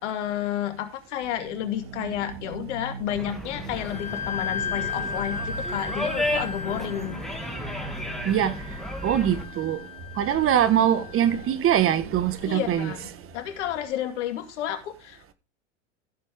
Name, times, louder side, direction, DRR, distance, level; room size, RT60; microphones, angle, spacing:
voice 1, 0.0-7.2 12.4-13.1 13.3-15.3, left 11 dB, 70° left, 2.3 m, -31 dB
sound 1, 1.2-13.9, right 4 dB, 80° right, 4.4 m, -41 dB
sound 2, 3.1-9.4, left 1 dB, ahead, 2.6 m, -33 dB
Wind instrument woodwind instrument, 3.8-11.2, left 5 dB, 15° left, 3.2 m, -36 dB
voice 2, 8.2-8.5 9.0-9.8 10.2-12.9, right 10 dB, 35° right, 1.5 m, -22 dB
15.5 x 7.5 x 3.6 m
hypercardioid pair, 95°, 37 cm